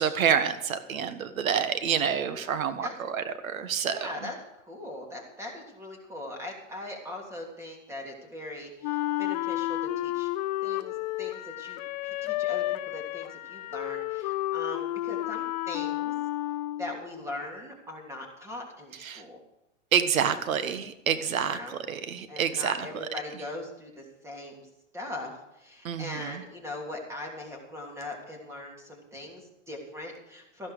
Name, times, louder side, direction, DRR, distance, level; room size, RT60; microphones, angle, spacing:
voice 1, 0.0-4.0 19.0-19.2 19.9-21.6 21.9-22.8 25.8-26.3, right 7 dB, 85° right, 11 dB, 1.4 m, -27 dB
voice 2, 3.9-4.4 4.6-10.3 10.6-16.1 16.8-19.4 21.4-21.8 22.3-24.7 24.9-30.7, left 1 dB, 5° right, 0 dB, 3.1 m, -40 dB
Wind instrument woodwind instrument, 8.8-17.0, left 15 dB, 35° left, 0.5 m, -31 dB
14.5 x 11.5 x 5.0 m, 0.88 s
hypercardioid pair, 145°, 40 cm